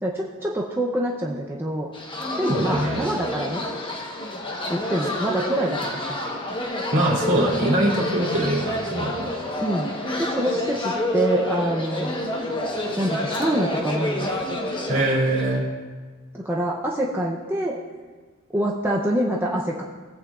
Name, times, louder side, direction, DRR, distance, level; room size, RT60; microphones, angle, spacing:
voice 1, 0.0-1.9 2.4-3.6 4.7-6.2 9.6-9.9 10.2-12.1 13.0-14.3 16.3-17.8 18.5-19.8, right 1 dB, 10° right, -3 dB, 0.6 m, -25 dB
sound 1, 1.9-15.6, left 1 dB, 25° left, 1.1 m, -28 dB
voice 2, 2.5-3.1 6.9-9.3 14.9-15.6, right 1 dB, 55° right, -3 dB, 2.7 m, -22 dB
18.0 x 8.2 x 2.4 m, 1.4 s
head